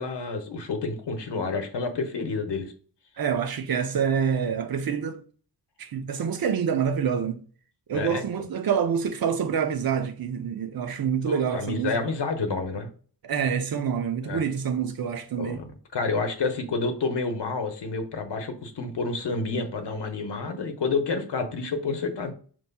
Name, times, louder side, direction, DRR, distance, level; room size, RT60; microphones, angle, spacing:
voice 1, 0.0-2.7 7.9-8.3 11.3-12.9 14.2-14.4 15.4-22.3, left 4 dB, 75° left, 0.8 m, -29 dB
voice 2, 3.2-5.2 5.8-7.4 7.9-11.9 13.2-15.6, right 7 dB, 55° right, 0.6 m, -27 dB
5.4 x 3.0 x 2.2 m
wide cardioid pair, 115°, 42 cm